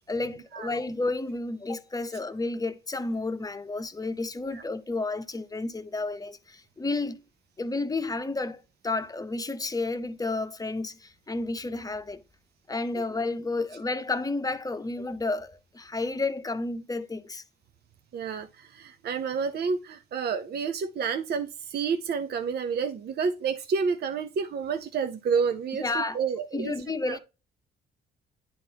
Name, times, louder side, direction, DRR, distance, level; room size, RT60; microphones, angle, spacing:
voice 1, 0.1-7.2 7.6-12.2 12.7-17.4 25.8-26.2 26.5-27.2, left 3 dB, 20° left, 0.8 m, -31 dB
voice 2, 18.1-26.7 27.1-27.2, right 5 dB, 55° right, 0.7 m, -29 dB
11.0 x 3.7 x 2.8 m
cardioid pair, 90°, 20 cm